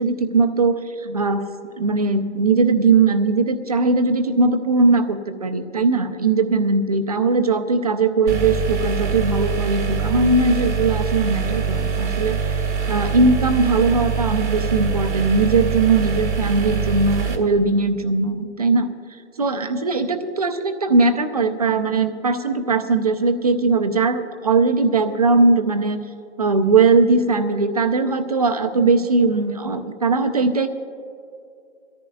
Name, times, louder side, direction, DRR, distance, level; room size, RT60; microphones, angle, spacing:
voice 1, 0.0-1.5 1.8-12.5 12.9-18.9 19.4-26.0 26.4-30.7, right 3 dB, 35° right, 8 dB, 0.6 m, -19 dB
sound 1, 8.3-17.4, right 6 dB, 80° right, 2.1 m, -24 dB
23.0 x 14.0 x 2.3 m, 2.5 s
hypercardioid pair, 180°, 35 cm